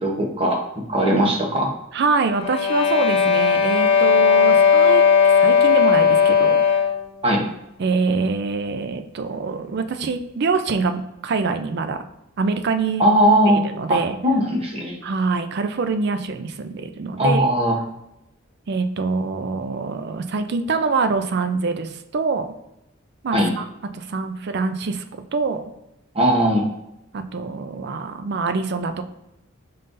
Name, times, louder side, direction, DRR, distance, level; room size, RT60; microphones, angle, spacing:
voice 1, 0.0-0.6 0.9-1.7 7.2-7.4 13.0-13.6 13.9-15.0 17.2-17.8 23.3-23.5 26.1-26.6, right 1 dB, 30° right, -1 dB, 1.0 m, -19 dB
voice 2, 1.9-5.0 5.4-6.6 7.8-12.0 12.4-13.0 13.5-14.2 15.0-17.5 18.7-22.5 23.2-23.6 23.9-25.0 25.3-25.6 27.1-29.0, right 4 dB, 55° right, 8 dB, 0.4 m, -24 dB
sound 1, 2.3-7.0, left 6 dB, 30° left, 0.6 m, -16 dB
5.4 x 3.7 x 2.6 m, 0.87 s
head